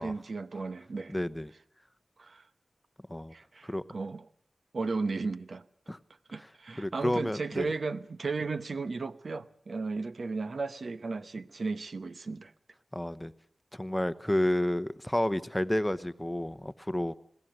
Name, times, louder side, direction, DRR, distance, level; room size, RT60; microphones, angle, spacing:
voice 1, 0.0-1.1 2.2-2.4 3.3-4.3 4.7-5.6 6.3-12.5, right 4 dB, 70° right, 0.9 m, -35 dB
voice 2, 1.1-1.5 3.1-3.3 3.6-3.8 5.9-6.0 6.4-6.5 6.8-7.7 12.9-13.3 13.7-17.2, left 1 dB, 10° left, 1.0 m, -30 dB
21.0 x 16.0 x 9.2 m
cardioid pair, 50°, 0 cm